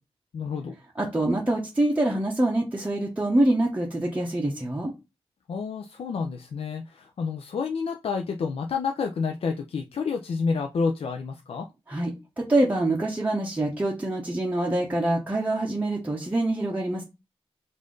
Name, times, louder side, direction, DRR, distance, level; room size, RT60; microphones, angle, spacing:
voice 1, 0.3-0.8 5.5-11.7, left 5 dB, 75° left, 4 dB, 0.4 m, -29 dB
voice 2, 1.0-4.9 11.9-17.0, right 1 dB, 15° right, -2 dB, 0.7 m, -25 dB
5.4 x 2.5 x 3.8 m, 0.26 s
wide cardioid pair, 140°, 10 cm